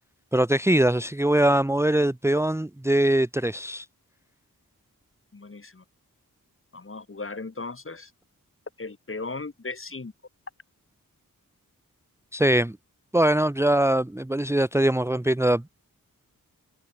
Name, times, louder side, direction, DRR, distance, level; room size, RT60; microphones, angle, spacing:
voice 1, 0.3-3.9 12.3-12.8 13.1-15.6, right 1 dB, 10° right, 1.0 m, -22 dB
voice 2, 5.3-5.8 6.7-8.1 8.8-10.1, left 3 dB, 35° left, 4.8 m, -37 dB
wide cardioid pair, 115°, 35 cm